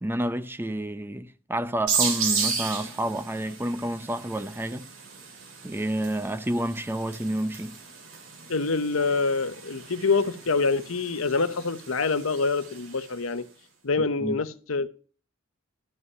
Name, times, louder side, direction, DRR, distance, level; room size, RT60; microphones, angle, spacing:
voice 1, 0.0-4.9 5.6-7.8 14.2-14.4, right 1 dB, 10° right, 0.6 m, -29 dB
sound 1, 1.9-13.2, right 5 dB, 70° right, 2.5 m, -34 dB
voice 2, 8.5-13.4 13.8-14.9, left 4 dB, 90° left, 0.9 m, -26 dB
12.5 x 5.7 x 5.4 m
head